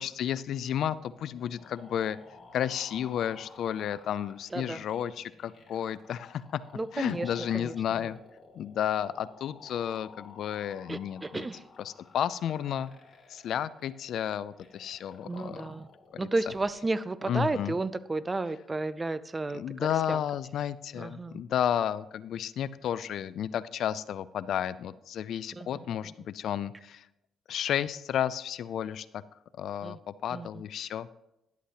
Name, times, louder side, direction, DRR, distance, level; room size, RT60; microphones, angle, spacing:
voice 1, 0.0-2.2 2.5-6.4 6.9-8.2 8.6-11.5 11.8-12.9 13.3-15.6 17.3-17.7 19.5-27.1 27.5-29.2 29.6-31.1, left 10 dB, 70° left, 17 dB, 0.4 m, -32 dB
sound 1, 0.8-16.7, left 3 dB, 45° left, 2.6 m, -54 dB
voice 2, 4.5-4.8 6.7-8.1 10.9-11.6 15.2-15.9 16.2-19.6 20.1-20.2 20.9-21.4 25.5-26.1 29.8-30.0 30.3-30.6, right 2 dB, 20° right, 16 dB, 0.5 m, -33 dB
11.5 x 8.3 x 3.0 m, 0.87 s
cardioid pair, 90°, 0 cm